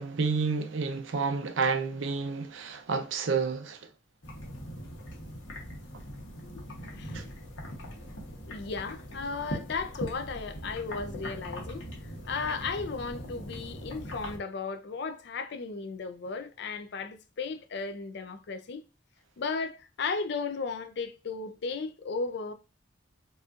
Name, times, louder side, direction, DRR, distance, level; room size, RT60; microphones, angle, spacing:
voice 1, 0.0-3.9 7.1-7.2, right 5 dB, 75° right, 0.5 m, -30 dB
sound 1, 4.2-14.4, equal, 85° left, 1.1 m, -41 dB
voice 2, 7.0-7.3 8.5-11.9 12.3-18.8 19.4-22.5, left 4 dB, 60° left, 0.4 m, -35 dB
4.1 x 2.4 x 2.4 m
head